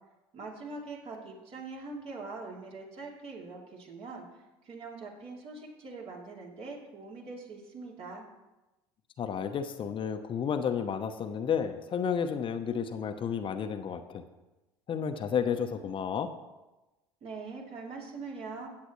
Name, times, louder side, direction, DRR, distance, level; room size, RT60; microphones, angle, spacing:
voice 1, 0.3-8.2 17.2-18.7, right 3 dB, 50° right, -2 dB, 3.1 m, -43 dB
voice 2, 9.2-14.2 14.9-16.3, left 7 dB, 40° left, 8 dB, 0.8 m, -31 dB
16.0 x 8.6 x 3.1 m, 1.1 s
hypercardioid pair, 65°, 14 cm